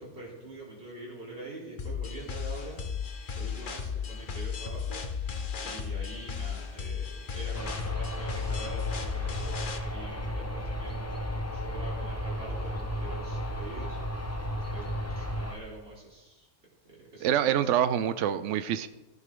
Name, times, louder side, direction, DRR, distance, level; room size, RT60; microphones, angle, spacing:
voice 1, 0.0-3.0 3.4-5.0 5.6-9.6 9.9-14.0 14.7-16.5 17.1-17.7, right 2 dB, 60° right, -5 dB, 4.0 m, -45 dB
sound 1, 1.8-9.8, left 6 dB, 45° left, 1.0 m, -35 dB
sound 2, 7.5-15.6, equal, 15° left, 0.8 m, -34 dB
voice 2, 17.2-18.9, right 10 dB, 80° right, 13 dB, 0.9 m, -26 dB
16.5 x 9.8 x 3.8 m, 1.1 s
omnidirectional pair, 1.2 m